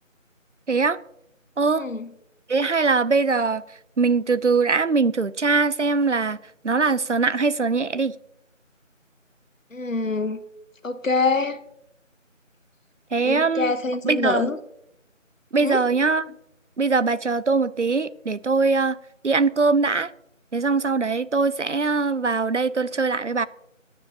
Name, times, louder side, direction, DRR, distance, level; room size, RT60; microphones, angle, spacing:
voice 1, 1.7-2.1 9.7-10.4 10.8-11.6 13.2-14.6 15.6-15.8, left 3 dB, 75° left, 1.0 m, -25 dB
voice 2, 2.5-3.6 4.0-6.4 6.6-8.2 13.1-13.7 14.0-14.5 15.5-16.2 16.8-19.0 19.2-20.1 20.5-23.5, right 4 dB, 65° right, 0.6 m, -21 dB
19.0 x 9.8 x 2.7 m
figure-of-eight pair, 175°, 39 cm